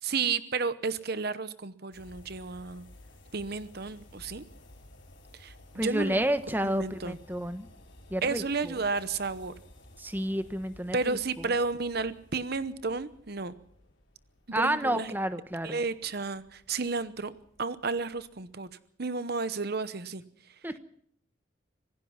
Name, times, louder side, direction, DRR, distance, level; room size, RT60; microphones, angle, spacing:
voice 1, 0.0-2.9 3.3-4.4 5.3-6.3 6.6-7.2 8.2-9.5 10.9-13.5 14.6-15.1 15.6-17.3 17.6-18.7 19.0-20.6, right 4 dB, 50° right, 14 dB, 0.9 m, -32 dB
sound 1, 1.9-18.7, left 1 dB, 65° left, 4.8 m, -55 dB
voice 2, 5.7-7.7 8.1-8.7 10.0-11.2 14.5-15.8 20.6-20.8, right 1 dB, 10° right, 10 dB, 1.2 m, -30 dB
26.0 x 17.5 x 5.8 m, 0.66 s
head